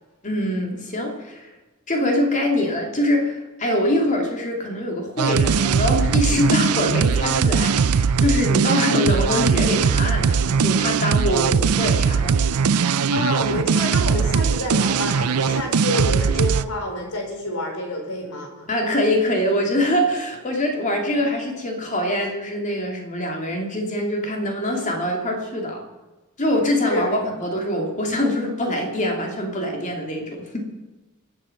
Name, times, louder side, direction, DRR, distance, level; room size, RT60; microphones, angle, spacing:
voice 1, 0.2-1.5 1.9-12.4 18.7-25.8 26.4-30.6, left 1 dB, 35° left, 1 dB, 2.6 m, -24 dB
sound 1, 5.2-16.6, right 6 dB, 90° right, 0.5 m, -20 dB
voice 2, 13.1-18.7 26.9-27.2, left 1 dB, 80° left, 1 dB, 4.4 m, -28 dB
22.5 x 7.8 x 5.8 m, 1.2 s
head